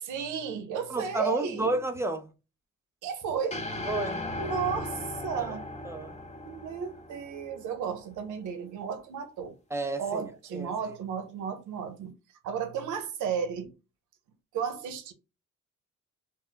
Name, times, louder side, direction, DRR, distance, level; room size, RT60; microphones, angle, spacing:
voice 1, 0.0-1.7 3.0-3.6 4.4-5.7 6.4-9.5 10.0-12.1 12.4-13.7 14.5-15.1, right 7 dB, 80° right, 0.7 m, -33 dB
voice 2, 0.9-2.3 3.9-4.2 5.4-5.6 5.8-6.2 9.7-10.3 10.5-10.9, right 2 dB, 10° right, 0.4 m, -31 dB
sound 1, 3.5-7.9, left 2 dB, 20° left, 0.8 m, -37 dB
2.1 x 2.1 x 3.8 m
cardioid pair, 90°, 30 cm